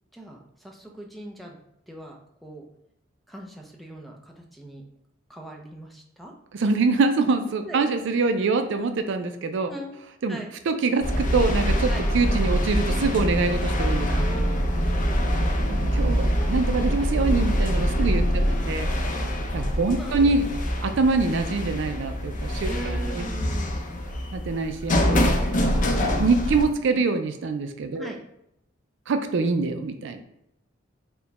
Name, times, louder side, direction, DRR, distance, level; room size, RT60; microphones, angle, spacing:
voice 1, 0.1-1.6 1.9-2.6 3.3-4.8 5.3-6.3 7.7-7.8 9.7-10.0 10.3-10.5 11.9-12.0 14.1-15.2 16.3-16.5 17.0-17.1 17.9-18.7 19.8-20.3 22.6-24.0 27.9-28.2, right 1 dB, ahead, 0 dB, 0.5 m, -40 dB
voice 2, 6.5-9.7 10.2-10.4 10.7-14.3 15.7-18.9 19.5-20.5 20.8-23.3 24.3-25.3 26.0-28.1 29.1-30.2, right 3 dB, 65° right, 7 dB, 0.4 m, -25 dB
sound 1, 11.0-26.6, equal, 40° left, 0.6 m, -24 dB
4.4 x 2.2 x 4.0 m, 0.81 s
head